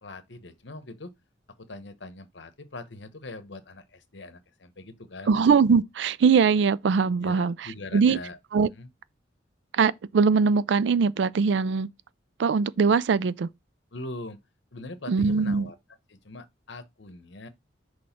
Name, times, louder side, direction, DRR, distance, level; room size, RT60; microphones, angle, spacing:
voice 1, 0.0-1.1 1.6-5.3 7.2-8.4 8.7-8.9 13.9-14.4 14.7-15.8 16.1-17.5, left 2 dB, 65° left, 1.0 m, -41 dB
voice 2, 5.3-8.2 8.5-8.7 9.7-11.9 12.4-13.5 15.1-15.7, right 5 dB, 70° right, 0.4 m, -22 dB
6.2 x 3.2 x 5.8 m
head